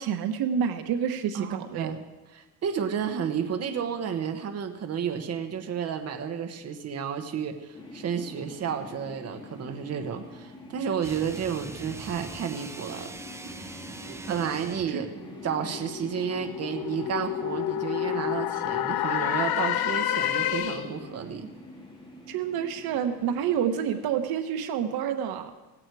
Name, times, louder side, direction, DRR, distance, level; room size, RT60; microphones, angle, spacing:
voice 1, 0.0-1.9 14.1-14.2 14.9-15.0 22.3-25.5, right 8 dB, 70° right, 8 dB, 1.2 m, -28 dB
voice 2, 1.3-2.0 2.3-13.1 13.5-13.6 14.3-15.1 15.4-21.5, right 7 dB, 40° right, 6 dB, 1.3 m, -31 dB
sound 1, 7.7-24.2, left 1 dB, 10° left, 2.3 m, -45 dB
sound 2, 11.0-15.0, right 2 dB, 5° right, 0.6 m, -42 dB
sound 3, 14.9-21.1, left 12 dB, 70° left, 0.9 m, -29 dB
17.0 x 16.0 x 4.8 m, 1.2 s
cardioid pair, 160°, 38 cm